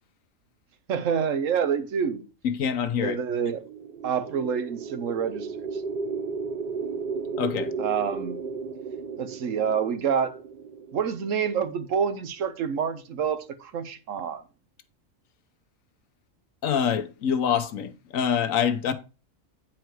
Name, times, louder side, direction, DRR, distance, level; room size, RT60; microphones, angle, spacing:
voice 1, 0.9-2.2 3.0-3.6 4.0-5.8 7.8-8.4 9.2-10.4 10.9-14.4, right 7 dB, 75° right, 1.2 m, -27 dB
voice 2, 2.4-3.2 7.3-7.7 16.6-18.9, left 8 dB, 80° left, 1.3 m, -25 dB
sound 1, 3.6-11.6, right 4 dB, 55° right, 0.6 m, -34 dB
9.1 x 4.6 x 4.6 m
omnidirectional pair, 1.4 m